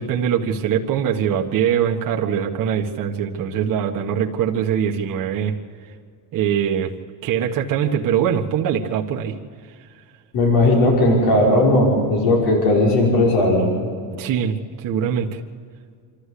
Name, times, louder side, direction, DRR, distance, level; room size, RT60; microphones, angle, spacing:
voice 1, 0.0-5.6 6.3-6.9 7.2-9.4 14.2-15.4, right 8 dB, 50° right, 1 dB, 1.6 m, -22 dB
voice 2, 10.3-13.7, left 1 dB, 65° left, -2 dB, 6.0 m, -16 dB
26.5 x 13.5 x 8.4 m, 2.2 s
cardioid pair, 135°, 42 cm